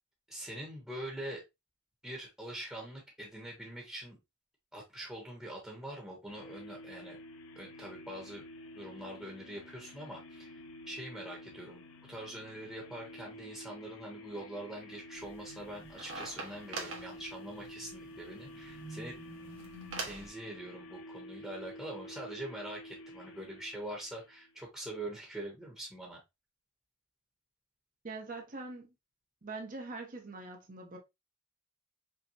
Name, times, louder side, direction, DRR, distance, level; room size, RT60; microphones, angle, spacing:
voice 1, 0.3-1.4 2.0-4.2 4.7-7.2 7.6-8.4 8.8-10.5 10.9-11.8 12.1-19.2 20.0-26.2, right 1 dB, 5° right, 1.0 m, -44 dB
sound 1, 6.3-24.6, left 1 dB, 80° left, 0.6 m, -50 dB
sound 2, 15.2-20.3, right 3 dB, 65° right, 1.3 m, -45 dB
voice 2, 28.0-28.9 29.4-31.0, right 3 dB, 40° right, 0.8 m, -43 dB
5.4 x 2.2 x 2.7 m
head